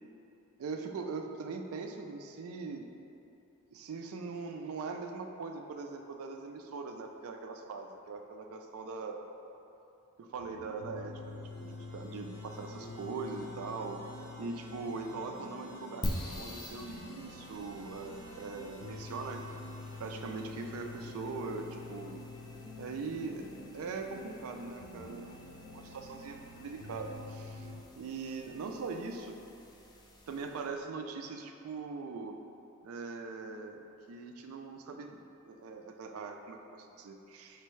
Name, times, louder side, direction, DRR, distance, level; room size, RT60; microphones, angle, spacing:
voice 1, 0.6-2.9 3.7-9.2 10.2-14.0 14.4-16.0 16.4-19.4 20.0-22.2 22.8-23.5 23.7-25.5 25.7-27.7 28.0-29.4 30.3-32.4 32.8-35.2 35.5-37.6, right 4 dB, 70° right, 4 dB, 0.3 m, -41 dB
sound 1, 10.4-27.8, left 2 dB, 80° left, 0.5 m, -47 dB
sound 2, 11.0-22.3, right 1 dB, 20° right, 0.7 m, -57 dB
sound 3, 16.0-30.7, left 1 dB, 20° left, 0.3 m, -46 dB
4.5 x 3.3 x 3.1 m, 2.8 s
head